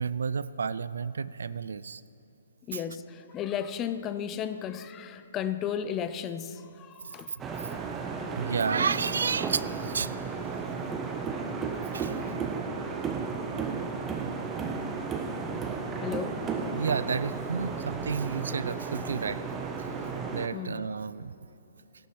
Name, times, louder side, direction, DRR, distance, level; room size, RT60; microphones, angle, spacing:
voice 1, 0.0-2.0 2.7-2.8 8.4-10.2 10.7-11.0 11.3-12.1 16.7-19.4 20.3-21.3, right 5 dB, 75° right, 17 dB, 0.3 m, -31 dB
voice 2, 2.7-7.4 8.2-8.3 16.0-16.4 17.7-17.8 20.5-20.9, left 8 dB, 20° left, 13 dB, 0.5 m, -34 dB
sound 1, 7.4-20.5, right 5 dB, 15° right, 0.7 m, -34 dB
17.0 x 11.5 x 3.2 m, 2.8 s
hypercardioid pair, 140°, 0 cm